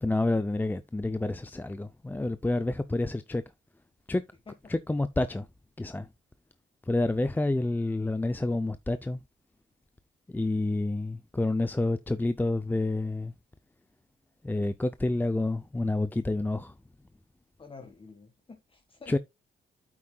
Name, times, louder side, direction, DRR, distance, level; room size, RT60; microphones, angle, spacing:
voice 1, 0.0-3.4 4.1-4.2 4.7-5.5 5.8-6.1 6.9-9.2 10.3-13.3 14.4-16.7 19.1-19.2, left 2 dB, 10° left, 0.5 m, -28 dB
voice 2, 17.6-19.2, left 4 dB, 25° left, 1.6 m, -49 dB
8.6 x 8.5 x 2.3 m
cardioid pair, 90°, 20 cm